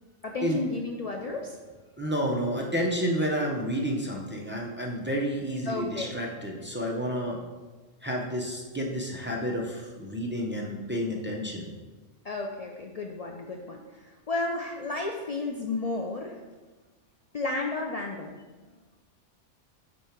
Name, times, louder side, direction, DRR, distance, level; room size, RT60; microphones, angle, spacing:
voice 1, 0.2-1.6 5.7-6.2 12.2-16.4 17.3-18.3, left 2 dB, 85° left, 1 dB, 0.3 m, -32 dB
voice 2, 2.0-7.4 8.0-11.7, equal, 15° right, -2 dB, 0.5 m, -30 dB
5.3 x 4.7 x 4.4 m, 1.3 s
omnidirectional pair, 1.3 m